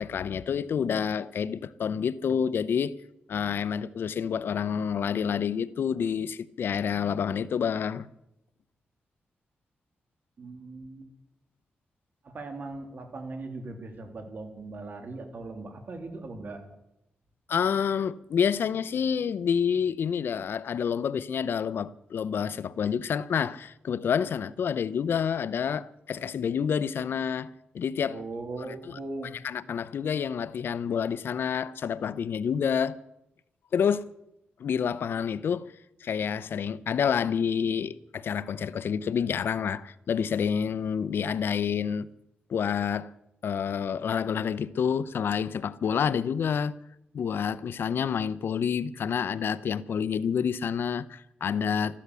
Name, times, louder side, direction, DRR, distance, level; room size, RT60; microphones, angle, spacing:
voice 1, 0.0-2.9 3.3-8.1 17.5-28.2 28.7-29.0 29.4-33.0 33.7-34.1 34.6-35.7 36.0-42.1 42.5-43.1 43.4-46.8 47.1-52.0, left 7 dB, 70° left, 0.7 m, -28 dB
voice 2, 10.4-11.1 12.2-16.6 28.1-29.3, right 2 dB, 55° right, 3.2 m, -39 dB
14.5 x 12.0 x 8.2 m
cardioid pair, 90°, 4 cm